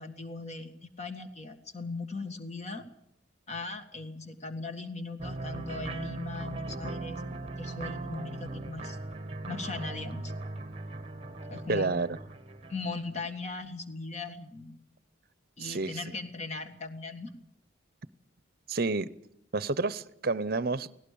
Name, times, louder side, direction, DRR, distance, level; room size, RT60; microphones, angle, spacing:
voice 1, 0.0-2.9 3.5-9.0 9.5-10.3 11.4-11.9 12.7-14.8 15.6-17.3, left 3 dB, 35° left, 1.8 m, -39 dB
sound 1, 5.2-13.6, right 2 dB, 30° right, 1.0 m, -39 dB
voice 2, 11.7-12.2 15.6-16.0 18.7-19.1 19.5-20.9, right 3 dB, 50° right, 0.7 m, -29 dB
17.5 x 17.5 x 8.5 m
head